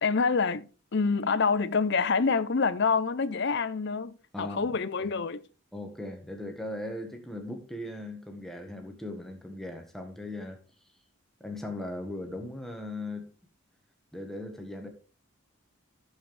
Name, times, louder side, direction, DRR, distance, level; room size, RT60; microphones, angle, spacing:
voice 1, 0.0-5.4, left 4 dB, 55° left, 0.6 m, -27 dB
voice 2, 4.3-4.7 5.0-5.1 5.7-10.6 11.4-13.3 14.1-14.9, left 1 dB, ahead, 1.5 m, -38 dB
11.5 x 7.3 x 3.3 m
head